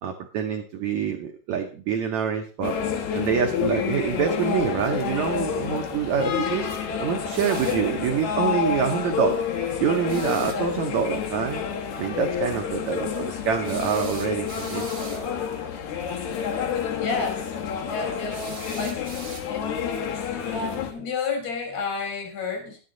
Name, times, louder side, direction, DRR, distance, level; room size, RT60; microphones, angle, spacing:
voice 1, 0.0-2.8 3.1-6.7 7.0-9.4 9.8-11.6 12.0-15.2, right 7 dB, 80° right, 3 dB, 1.6 m, -26 dB
sound 1, 2.6-20.9, left 7 dB, 60° left, 2.2 m, -29 dB
sound 2, 7.3-7.9 10.1-10.6 13.6-15.3 18.3-19.7, right 3 dB, 55° right, 0.8 m, -41 dB
voice 2, 17.0-17.5 17.9-18.4 18.8-19.0 20.5-22.8, left 4 dB, 75° left, 2 dB, 5.5 m, -30 dB
11.5 x 9.7 x 3.9 m, 0.37 s
omnidirectional pair, 4.6 m